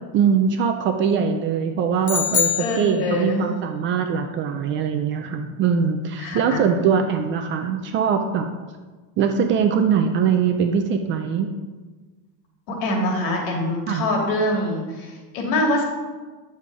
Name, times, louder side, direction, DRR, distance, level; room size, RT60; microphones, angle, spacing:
voice 1, 0.1-2.5 2.8-8.5 9.2-11.5 13.9-14.0, right 7 dB, 30° right, 5 dB, 0.3 m, -22 dB
sound 1, 2.0-3.5, left 8 dB, 20° left, 0.7 m, -24 dB
voice 2, 2.6-3.4 6.2-6.6 12.7-15.8, left 1 dB, 70° left, 0 dB, 2.9 m, -24 dB
9.4 x 6.9 x 4.8 m, 1.3 s
cardioid pair, 170°, 45 cm